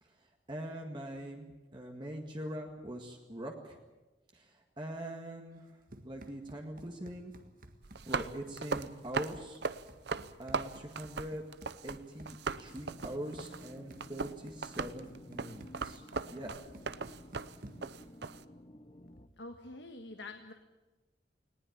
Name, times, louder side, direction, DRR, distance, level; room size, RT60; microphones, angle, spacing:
voice 1, 0.0-3.8 4.3-5.7 6.0-7.3 8.0-9.6 10.4-11.4 11.8-16.0 16.3-16.6, right 1 dB, 25° right, 1 dB, 1.9 m, -43 dB
Run, 5.6-18.0, right 1 dB, 50° right, 1.7 m, -55 dB
sound 1, 7.8-12.0 12.3-18.4, right 4 dB, 70° right, 0.8 m, -38 dB
sound 2, 12.5-19.3, left 1 dB, 30° left, 1.0 m, -54 dB
voice 2, 19.4-20.5, left 2 dB, 90° left, 5 dB, 1.6 m, -46 dB
20.0 x 19.0 x 8.7 m, 1.2 s
head